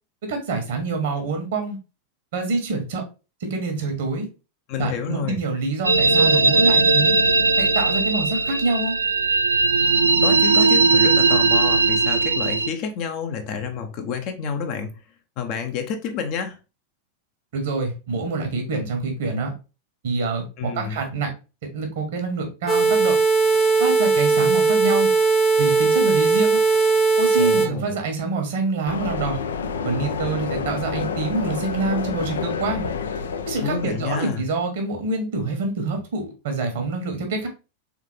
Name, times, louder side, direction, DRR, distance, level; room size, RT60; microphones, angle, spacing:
voice 1, 0.2-1.8 2.3-3.0 3.4-4.3 4.8-7.1 7.6-9.0 17.5-19.5 20.0-21.3 21.7-23.2 23.8-25.1 25.6-26.6 27.2-29.4 29.8-32.9 33.5-37.5, right 3 dB, 55° right, 1.2 m, -26 dB
voice 2, 4.7-5.4 10.2-14.9 15.4-16.6 20.6-21.0 27.4-28.0 33.6-34.4, left 6 dB, 40° left, 0.7 m, -29 dB
sound 1, 5.8-12.7, right 3 dB, 80° right, 0.3 m, -18 dB
sound 2, 22.7-27.7, right 4 dB, 10° left, 0.9 m, -18 dB
sound 3, 28.9-34.4, left 5 dB, 65° left, 0.4 m, -29 dB
3.6 x 3.6 x 3.2 m
figure-of-eight pair, 90°, 0 cm